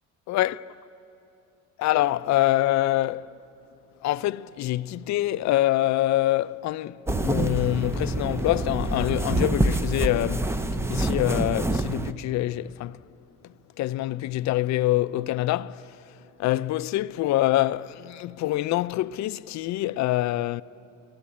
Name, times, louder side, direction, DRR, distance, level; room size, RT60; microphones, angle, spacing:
voice 1, 0.3-0.6 1.8-3.3 4.0-7.0 7.2-10.6 10.9-13.0 13.8-15.9 16.4-20.6, left 15 dB, 60° left, 0.5 m, -25 dB
sound 1, 7.1-12.1, right 2 dB, 10° right, 0.6 m, -26 dB
24.5 x 16.5 x 8.6 m
cardioid pair, 115°, 33 cm